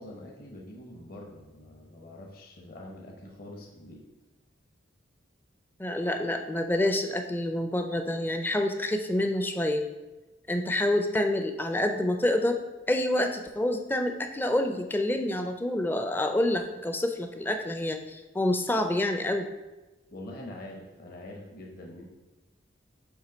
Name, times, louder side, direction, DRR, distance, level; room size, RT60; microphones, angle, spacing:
voice 1, 0.0-4.0 20.1-22.0, left 1 dB, 50° left, -1 dB, 0.9 m, -44 dB
voice 2, 5.8-9.9 10.5-19.5, left 1 dB, 10° left, 6 dB, 0.4 m, -27 dB
7.3 x 3.0 x 5.1 m, 1.1 s
head